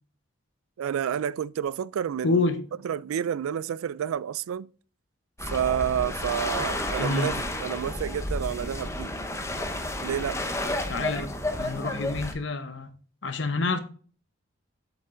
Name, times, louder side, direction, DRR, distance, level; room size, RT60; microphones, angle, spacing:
voice 1, 0.8-2.4 2.8-4.7 5.5-7.3 7.6-9.1 10.0-10.4, right 9 dB, 90° right, 0.3 m, -29 dB
voice 2, 2.2-2.6 7.0-7.3 10.9-11.3 11.6-12.9 13.2-13.8, left 3 dB, 60° left, 0.9 m, -27 dB
sound 1, 5.4-12.3, left 1 dB, 15° left, 0.8 m, -31 dB
7.3 x 5.5 x 3.7 m
head